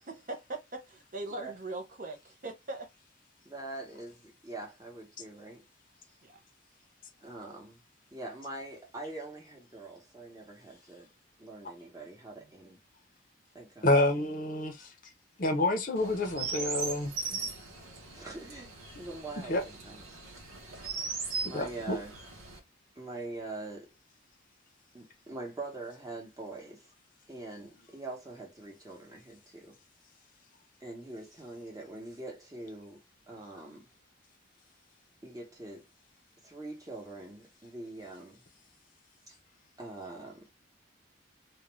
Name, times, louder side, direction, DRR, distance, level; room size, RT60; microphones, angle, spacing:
voice 1, 0.0-2.9 6.2-6.4, right 2 dB, 40° right, 0.5 m, -40 dB
voice 2, 3.4-5.6 7.2-7.8 8.1-11.1 11.4-12.8 13.5-14.0 18.1-20.2 21.4-22.1 23.0-23.9 24.9-26.8 27.3-29.8 30.8-33.0 33.3-33.9 35.2-35.8 36.4-38.4 39.3-39.4 39.8-40.5, right 2 dB, 15° right, 0.9 m, -43 dB
voice 3, 13.8-14.9 15.4-17.5 19.5-19.6 21.4-22.0, left 2 dB, 40° left, 0.6 m, -28 dB
Chirp tweet, 16.0-22.6, right 4 dB, 90° right, 0.7 m, -39 dB
2.4 x 2.2 x 3.0 m
head